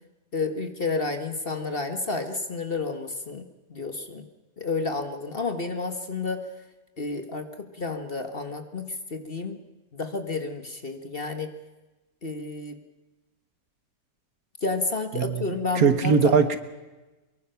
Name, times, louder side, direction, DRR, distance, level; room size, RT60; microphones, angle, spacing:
voice 1, 0.3-3.4 3.7-4.3 4.6-6.4 7.0-9.6 9.9-11.5 12.2-12.8 14.6-16.3, left 3 dB, 35° left, 7 dB, 1.5 m, -30 dB
voice 2, 15.7-16.6, right 5 dB, 55° right, 11 dB, 1.6 m, -20 dB
24.0 x 22.5 x 5.8 m, 1.1 s
omnidirectional pair, 1.9 m